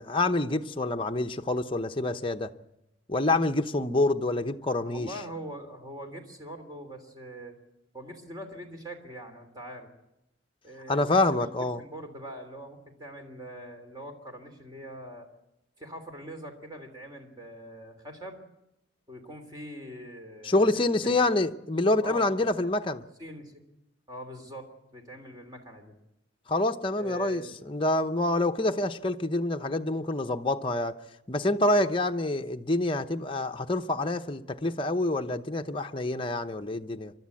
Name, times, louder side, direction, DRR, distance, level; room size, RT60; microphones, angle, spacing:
voice 1, 0.0-2.5 3.1-5.1 10.9-11.8 20.4-23.1 26.5-30.9 31.3-37.1, left 2 dB, 25° left, 0.8 m, -27 dB
voice 2, 4.8-7.5 7.9-9.9 10.6-11.5 11.8-15.3 15.8-18.4 19.1-21.2 22.0-22.6 23.2-23.6 24.1-25.9 26.9-27.6, right 1 dB, 20° right, 3.2 m, -43 dB
28.5 x 12.5 x 8.5 m
head